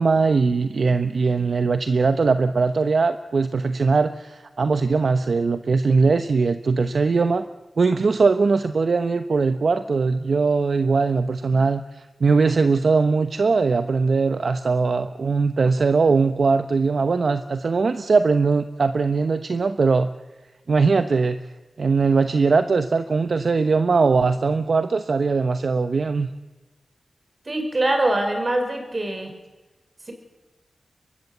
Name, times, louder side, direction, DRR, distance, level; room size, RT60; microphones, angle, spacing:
voice 1, 0.0-7.4 7.8-20.1 20.7-21.4 21.8-26.3, right 4 dB, 65° right, 10 dB, 1.0 m, -20 dB
voice 2, 27.5-29.3 30.1-30.2, right 1 dB, 40° right, 6 dB, 5.5 m, -23 dB
23.5 x 20.5 x 8.1 m, 1.2 s
wide cardioid pair, 80°, 0 cm